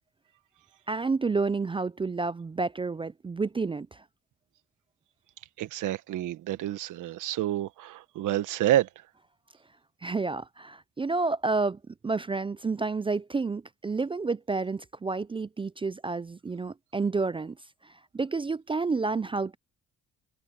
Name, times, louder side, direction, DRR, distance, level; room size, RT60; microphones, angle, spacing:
voice 1, 0.9-4.0 10.0-17.5 17.8-19.6, right 4 dB, 20° right, 0.4 m, -30 dB
voice 2, 5.6-8.9, right 13 dB, 85° right, 1.4 m, -28 dB
cardioid pair, 90°, 30 cm